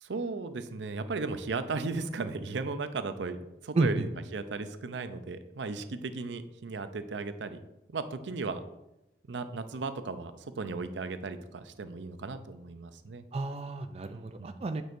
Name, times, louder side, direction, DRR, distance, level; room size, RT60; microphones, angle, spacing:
voice 1, 0.0-7.6 7.9-8.6 9.3-10.3 10.6-13.2 14.1-14.6, right 3 dB, 80° right, 10 dB, 0.6 m, -36 dB
voice 2, 3.7-4.0 13.3-14.8, right 3 dB, 35° right, 7 dB, 0.3 m, -31 dB
9.3 x 6.2 x 2.6 m, 0.92 s
head